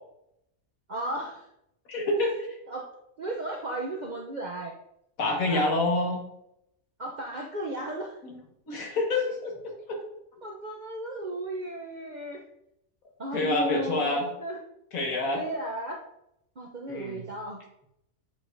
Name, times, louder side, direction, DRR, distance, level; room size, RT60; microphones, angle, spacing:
voice 1, 0.9-1.5 2.7-2.9 3.2-4.8 5.5-5.7 7.0-8.2 10.4-12.4 13.2-14.6 15.3-16.0 16.6-17.6, right 1 dB, 50° right, 0 dB, 0.5 m, -35 dB
voice 2, 1.9-2.6 5.2-6.2 8.2-8.4 8.7-10.0 13.3-14.3 14.9-15.4 16.9-17.2, left 2 dB, 75° left, 0 dB, 1.8 m, -27 dB
7.7 x 4.8 x 2.6 m, 0.80 s
omnidirectional pair, 1.5 m